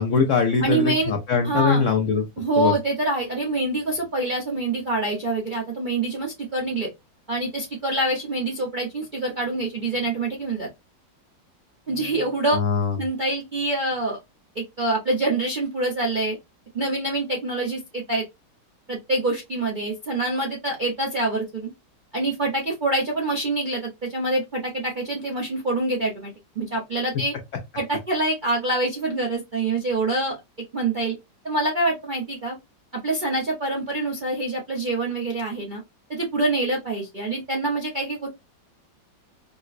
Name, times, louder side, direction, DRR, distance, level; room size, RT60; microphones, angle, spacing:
voice 1, 0.0-2.2 2.6-2.7 12.5-13.0, left 5 dB, 90° left, 4 dB, 0.6 m, -22 dB
voice 2, 0.6-1.1 1.4-1.8 2.4-6.9 7.3-10.7 11.9-12.6 13.0-14.2 14.5-16.4 16.7-18.2 18.9-21.7 22.1-27.3 27.7-30.4 30.7-31.2 31.4-32.6 32.9-35.8 36.1-38.3, right 2 dB, 60° right, -3 dB, 0.5 m, -25 dB
5.1 x 2.0 x 2.4 m, 0.21 s
omnidirectional pair, 2.0 m